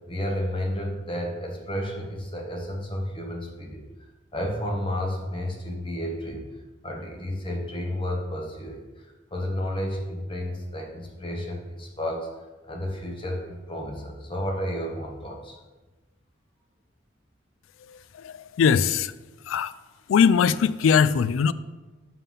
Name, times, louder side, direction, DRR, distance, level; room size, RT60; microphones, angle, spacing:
voice 1, 0.1-3.8 4.3-6.5 6.8-9.0 9.3-12.3 12.7-15.6, equal, 25° left, 1 dB, 1.1 m, -31 dB
voice 2, 17.9-19.1 19.4-19.7 20.1-21.5, left 6 dB, 90° left, 16 dB, 0.3 m, -21 dB
5.7 x 5.5 x 5.5 m, 1.2 s
head